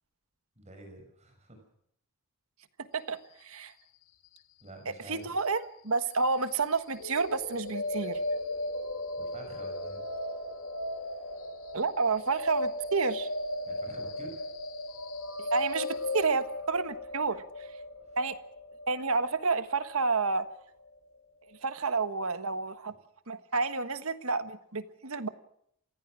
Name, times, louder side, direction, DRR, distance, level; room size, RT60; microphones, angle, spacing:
voice 1, 0.6-1.6 4.6-5.3 9.2-10.0 13.7-14.4, right 1 dB, 30° right, 4 dB, 5.7 m, -48 dB
voice 2, 2.9-3.7 5.1-8.2 11.7-13.3 15.4-17.7 18.2-18.4 18.9-20.5 21.6-22.9 23.3-25.3, right 4 dB, 70° right, 11 dB, 1.4 m, -30 dB
sound 1, 7.0-20.9, left 1 dB, 70° left, 2.0 m, -36 dB
29.0 x 16.0 x 6.3 m, 0.70 s
head